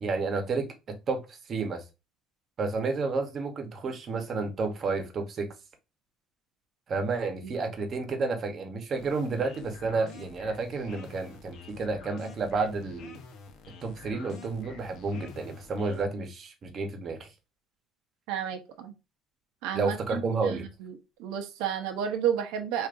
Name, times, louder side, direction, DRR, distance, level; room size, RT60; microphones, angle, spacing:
voice 1, 0.0-1.8 2.6-5.5 6.9-13.2 13.8-17.3 19.7-20.7, right 4 dB, 40° right, 0.9 m, -31 dB
sound 1, 8.9-16.0, left 5 dB, 60° left, 0.8 m, -49 dB
voice 2, 18.3-18.9 19.6-20.9 21.2-22.9, right 9 dB, 85° right, 0.7 m, -32 dB
4.8 x 2.5 x 2.5 m
cardioid pair, 115°, 0 cm